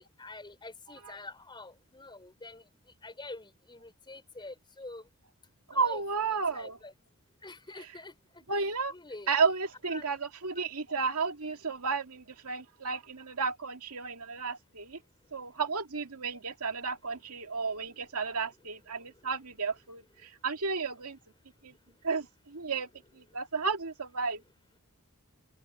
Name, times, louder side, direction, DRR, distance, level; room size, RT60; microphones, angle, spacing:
voice 1, 0.0-2.6 3.0-5.0 5.8-6.0 6.5-6.9 7.4-8.1 8.9-9.3 9.9-10.1, left 2 dB, 20° left, 4.0 m, -46 dB
voice 2, 5.7-6.8 7.8-8.0 8.5-9.0 9.3-15.0 15.3-21.2 21.6-21.7 22.0-22.9 23.1-24.4, right 4 dB, 85° right, 2.2 m, -33 dB
head